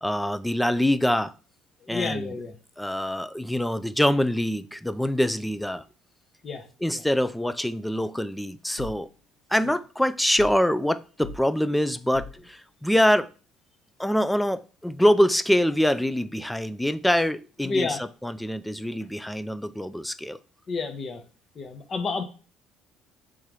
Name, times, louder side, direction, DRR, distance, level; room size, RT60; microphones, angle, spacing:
voice 1, 0.0-1.3 1.9-2.3 2.8-5.8 6.8-9.1 9.5-13.3 14.0-20.4, equal, 5° left, 12 dB, 0.3 m, -24 dB
voice 2, 1.8-2.5 6.4-6.6 6.9-7.0 9.6-9.8 17.6-18.0 20.7-21.2 21.5-22.2, left 4 dB, 40° left, 7 dB, 0.9 m, -30 dB
sound 1, 8.8-9.1 10.4-10.7 11.2-11.5 12.1-12.5, left 3 dB, 75° left, 0.5 m, -40 dB
3.7 x 2.9 x 4.7 m, 0.37 s
cardioid pair, 105°, 0 cm